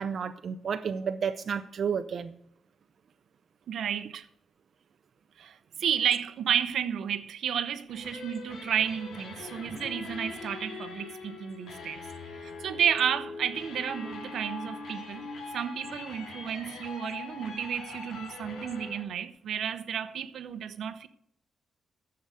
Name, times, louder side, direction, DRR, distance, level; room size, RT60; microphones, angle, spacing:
voice 1, 0.0-2.3, right 6 dB, 55° right, 0.5 m, -31 dB
voice 2, 3.7-4.3 5.4-12.0 12.4-15.3 15.5-21.1, right 8 dB, 85° right, 0.8 m, -31 dB
sound 1, 7.9-19.0, left 3 dB, 90° left, 2.9 m, -42 dB
11.0 x 7.0 x 6.4 m
wide cardioid pair, 145°, 0 cm